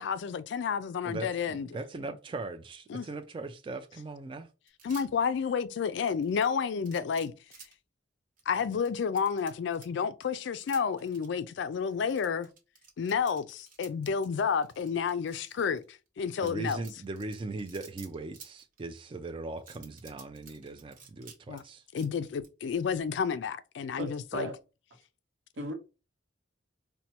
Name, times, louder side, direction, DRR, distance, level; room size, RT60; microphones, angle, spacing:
voice 1, 0.0-1.7 2.9-3.1 4.8-7.3 8.5-12.5 13.0-16.8 21.5-21.6 21.9-24.5, left 6 dB, 65° left, 0.3 m, -30 dB
voice 2, 1.0-4.5 16.4-21.8, right 2 dB, 25° right, 0.3 m, -39 dB
sound 1, 4.7-5.3 5.9-7.7 8.4-9.9 10.2-11.3 11.8-15.9 16.3-19.0 19.6-21.6 21.9-22.5, right 5 dB, 45° right, 1.0 m, -52 dB
voice 3, 24.0-24.6 25.6-25.7, right 1 dB, 70° right, 0.8 m, -36 dB
4.2 x 2.2 x 2.8 m
head